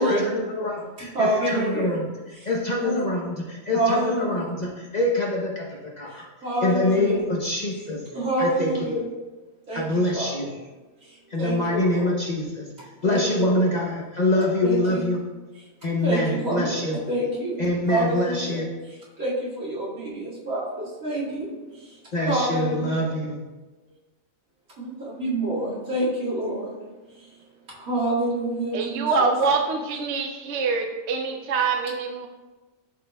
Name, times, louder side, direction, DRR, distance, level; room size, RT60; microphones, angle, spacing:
voice 1, 0.0-2.1 2.4-5.6 6.0-6.3 6.6-8.0 8.4-9.0 9.7-10.5 11.3-12.7 13.0-15.2 15.8-17.0 17.6-18.7 22.1-23.4, left 1 dB, 40° left, -2 dB, 0.7 m, -25 dB
voice 2, 1.0-2.0 2.3-2.5 2.8-3.1 3.7-4.5 6.4-7.2 8.1-9.0 9.7-10.3 11.4-12.2 13.0-13.7 14.6-15.0 16.0-18.6 19.2-21.5 22.3-23.1 24.8-26.7 27.8-29.3, right 1 dB, 85° right, -8 dB, 2.5 m, -27 dB
voice 3, 28.7-32.3, right 4 dB, 65° right, 4 dB, 0.8 m, -25 dB
11.5 x 4.3 x 2.2 m, 1.2 s
omnidirectional pair, 1.4 m